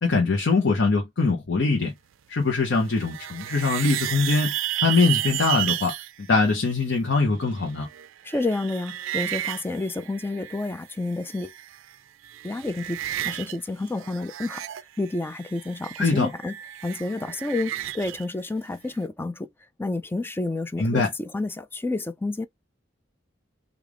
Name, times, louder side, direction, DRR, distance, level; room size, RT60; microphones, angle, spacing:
voice 1, 0.0-1.9 2.3-4.5 4.8-7.9 16.0-16.3 20.8-21.1, left 3 dB, 65° left, 0.7 m, -22 dB
sound 1, 2.7-6.1 7.5-10.9 11.1-11.9 12.2-13.6 13.8-18.2, right 14 dB, 75° right, 0.4 m, -32 dB
voice 2, 8.2-11.5 12.4-14.6 15.0-16.5 16.8-19.5 19.8-22.5, left 2 dB, 10° left, 0.3 m, -29 dB
3.3 x 2.4 x 3.6 m
head